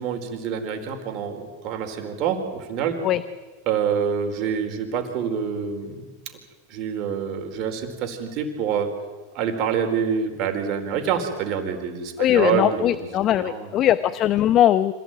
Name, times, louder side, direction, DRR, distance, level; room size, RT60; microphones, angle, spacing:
voice 1, 0.0-3.0 3.7-6.1 6.7-8.9 9.3-13.0 13.2-13.7, right 7 dB, 50° right, 5 dB, 4.4 m, -26 dB
voice 2, 12.2-14.9, left 12 dB, 40° left, 14 dB, 0.9 m, -20 dB
26.0 x 17.0 x 9.2 m, 1.3 s
hypercardioid pair, 100°, 0 cm